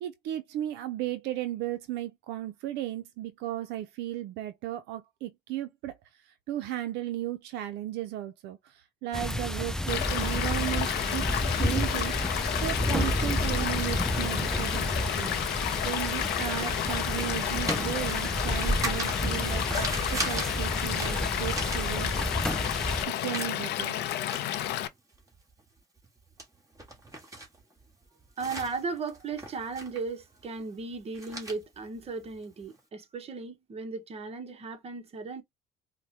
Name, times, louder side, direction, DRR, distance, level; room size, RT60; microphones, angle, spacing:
voice 1, 0.0-12.2 12.5-15.4 15.8-22.1 23.1-24.0, right 13 dB, 85° right, 0.5 m, -35 dB
sound 1, 9.1-23.0, equal, 5° left, 0.4 m, -31 dB
Stream / Liquid, 9.9-24.9, left 12 dB, 80° left, 0.5 m, -31 dB
sound 2, 14.6-22.4 22.7-32.8, right 2 dB, 20° right, 1.5 m, -40 dB
voice 2, 28.4-35.4, right 4 dB, 35° right, 0.9 m, -36 dB
4.5 x 2.1 x 2.8 m
cardioid pair, 110°, 17 cm